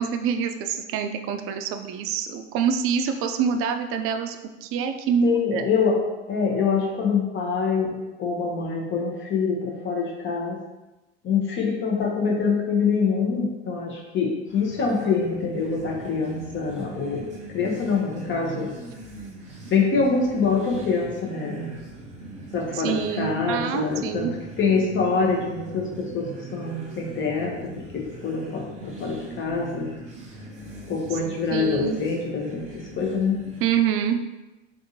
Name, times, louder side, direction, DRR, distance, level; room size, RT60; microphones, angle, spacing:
voice 1, 0.0-5.7 22.7-24.3 31.5-32.0 33.6-34.2, right 7 dB, 40° right, 7 dB, 0.4 m, -26 dB
voice 2, 5.2-6.0 6.3-7.9 8.2-10.6 11.2-18.7 19.7-21.7 22.5-24.3 24.6-29.9 30.9-32.6 33.0-33.4, left 5 dB, 35° left, 0 dB, 0.9 m, -25 dB
sound 1, 14.5-33.9, right 2 dB, 20° right, 1.2 m, -41 dB
3.5 x 2.6 x 2.8 m, 1.1 s
hypercardioid pair, 75°, 34 cm